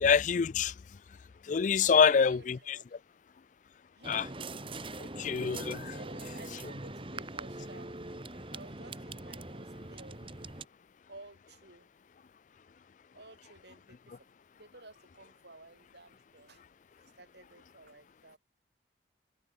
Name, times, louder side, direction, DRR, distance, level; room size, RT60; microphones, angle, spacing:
voice 1, 0.0-0.7 1.5-2.8 4.1-4.3 5.2-5.9, left 6 dB, 45° left, 0.4 m, -26 dB
voice 2, 1.8-2.8 4.0-4.3 5.0-5.1 5.8-7.9 8.5-10.2 11.1-11.9 13.1-14.1 14.5-16.6 17.0-18.4, right 2 dB, 70° right, 6.0 m, -54 dB
sound 1, 4.0-10.7, right 2 dB, 30° right, 2.1 m, -42 dB
head